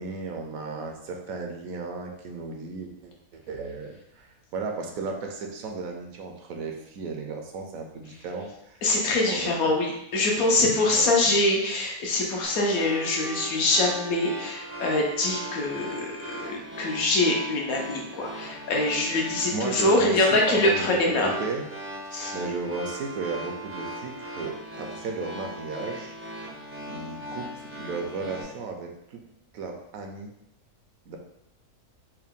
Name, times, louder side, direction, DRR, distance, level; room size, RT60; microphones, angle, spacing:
voice 1, 0.0-8.8 9.3-9.5 10.5-11.4 19.5-21.6 22.1-26.2 26.8-29.2 29.5-30.3 31.1-31.2, right 4 dB, 70° right, 2 dB, 1.0 m, -35 dB
voice 2, 8.8-16.1 16.4-21.3 22.1-22.3, left 2 dB, 70° left, 0 dB, 1.2 m, -24 dB
sound 1, 12.4-28.4, right 1 dB, 20° right, 0.3 m, -39 dB
4.5 x 2.2 x 3.5 m, 0.80 s
omnidirectional pair, 1.6 m